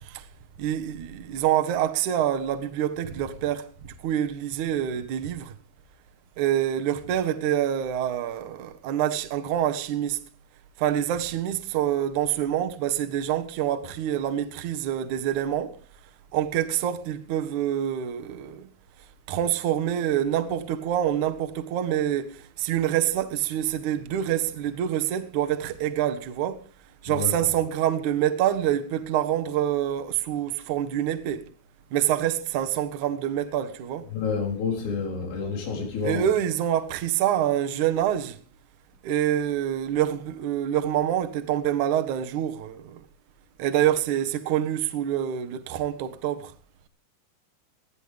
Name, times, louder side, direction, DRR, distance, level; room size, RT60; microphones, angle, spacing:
voice 1, 0.6-3.7 4.0-5.5 6.4-10.2 10.8-15.8 16.3-18.7 19.3-26.6 27.0-31.4 31.9-34.1 36.0-38.4 39.0-43.0 43.6-46.5, right 11 dB, 80° right, 1.7 m, -26 dB
voice 2, 27.1-27.5 34.1-36.3, left 5 dB, 90° left, 6.8 m, -29 dB
20.5 x 15.0 x 3.4 m
omnidirectional pair, 5.8 m